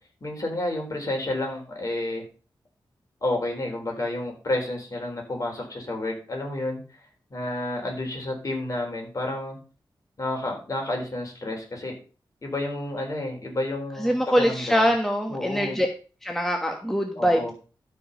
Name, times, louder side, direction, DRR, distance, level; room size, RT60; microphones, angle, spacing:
voice 1, 0.2-2.2 3.2-6.8 7.3-9.6 10.2-12.0 12.4-14.9 15.3-15.8 17.2-17.5, left 1 dB, 40° left, 1 dB, 4.1 m, -30 dB
voice 2, 14.0-15.9 16.2-17.4, equal, 5° left, 3 dB, 1.2 m, -23 dB
12.5 x 5.1 x 5.4 m, 0.35 s
wide cardioid pair, 120°, 9 cm